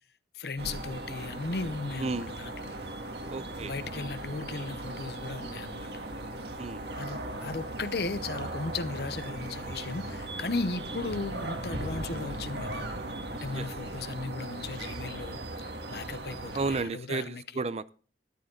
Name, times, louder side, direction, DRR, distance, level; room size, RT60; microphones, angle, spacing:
voice 1, 0.4-2.7 3.6-5.9 7.0-12.9 13.3-15.4 15.9-17.4, left 3 dB, 65° left, 0.8 m, -36 dB
sound 1, 0.6-16.8, right 1 dB, 70° right, 1.9 m, -38 dB
voice 2, 2.0-2.3 3.3-3.7 6.6-6.8 13.5-13.7 16.5-17.9, right 3 dB, 35° right, 0.5 m, -32 dB
13.0 x 10.5 x 3.9 m
head